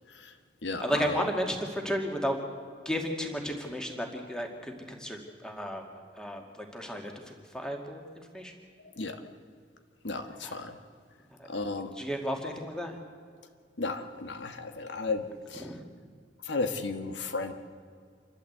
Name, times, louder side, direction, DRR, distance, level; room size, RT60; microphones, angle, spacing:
voice 1, 0.1-1.3 8.8-9.2 10.0-10.8 11.5-12.0 13.8-15.7 16.4-17.5, left 3 dB, 90° left, 6 dB, 1.5 m, -34 dB
voice 2, 0.8-2.4 2.8-8.5 10.4-10.6 11.3-11.5 12.0-13.0 15.6-16.1, equal, 5° left, 2 dB, 2.2 m, -34 dB
27.5 x 12.5 x 8.1 m, 2.1 s
head